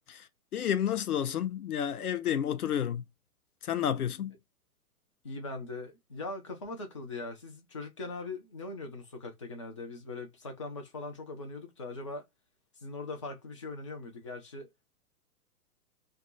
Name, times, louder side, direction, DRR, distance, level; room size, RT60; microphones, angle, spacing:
voice 1, 0.5-3.0 3.6-4.4, left 9 dB, 75° left, 0.5 m, -30 dB
voice 2, 5.2-12.3 12.8-14.9, left 3 dB, 25° left, 0.3 m, -41 dB
2.2 x 2.1 x 3.8 m
figure-of-eight pair, 110°, 46 cm